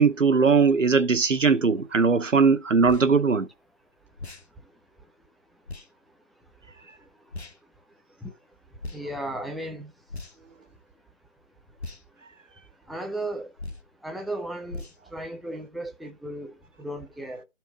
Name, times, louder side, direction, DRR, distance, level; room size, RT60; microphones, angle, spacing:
voice 1, 0.0-3.5, right 5 dB, 85° right, 1.0 m, -20 dB
sound 1, 2.8-3.1 4.2-4.5 5.7-5.9 7.3-7.6 8.8-9.0 10.1-10.5 11.8-12.0 13.6-13.9 14.7-15.0, left 2 dB, 55° left, 0.7 m, -38 dB
voice 2, 8.9-9.9 12.9-13.5 14.0-17.4, right 1 dB, ahead, 0.5 m, -35 dB
12.0 x 4.4 x 3.0 m
figure-of-eight pair, 175°, 37 cm